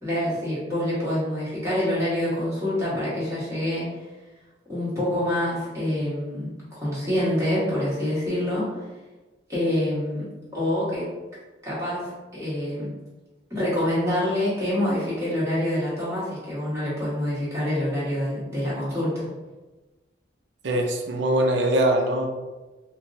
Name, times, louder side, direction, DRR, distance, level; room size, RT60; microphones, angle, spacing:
voice 1, 0.0-3.8 4.7-6.5 6.8-8.7 9.5-10.2 10.5-11.1 11.6-12.9 13.5-19.2, left 1 dB, 15° right, -10 dB, 1.3 m, -26 dB
voice 2, 20.6-22.3, right 1 dB, 70° right, 3 dB, 0.5 m, -22 dB
4.0 x 2.0 x 2.6 m, 1.2 s
head